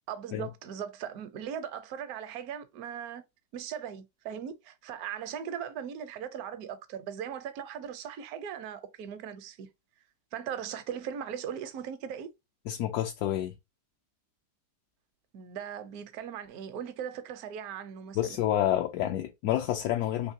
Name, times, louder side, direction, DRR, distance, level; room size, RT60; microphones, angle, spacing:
voice 1, 0.1-3.2 3.5-9.7 10.3-12.3 15.3-18.4, right 8 dB, 70° right, 1.1 m, -39 dB
voice 2, 12.7-13.5 18.2-20.3, left 12 dB, 75° left, 1.1 m, -29 dB
3.6 x 3.0 x 2.6 m
omnidirectional pair, 1.7 m